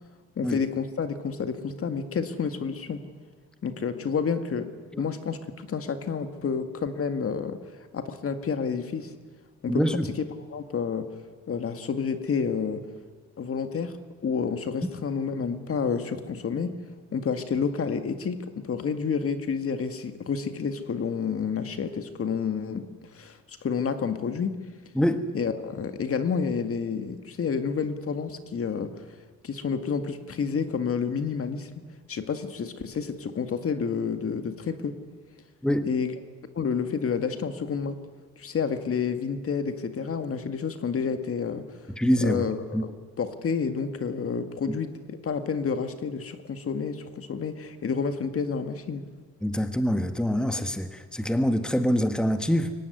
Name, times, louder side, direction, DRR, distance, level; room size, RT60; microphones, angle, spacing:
voice 1, 0.4-3.0 3.6-7.6 7.9-9.1 9.6-9.8 10.5-11.1 11.5-12.9 13.4-13.9 14.2-16.7 17.1-24.6 25.3-29.1 29.4-31.8 32.1-35.0 35.8-36.1 36.6-38.0 38.4-41.7 42.2-49.0, left 6 dB, 50° left, 9 dB, 2.0 m, -29 dB
voice 2, 9.7-10.1 24.9-25.2 35.6-35.9 41.9-42.4 42.7-42.8 44.7-44.8 49.4-52.7, equal, 5° left, 8 dB, 1.5 m, -25 dB
23.5 x 18.0 x 9.6 m, 1.5 s
cardioid pair, 90°, 30 cm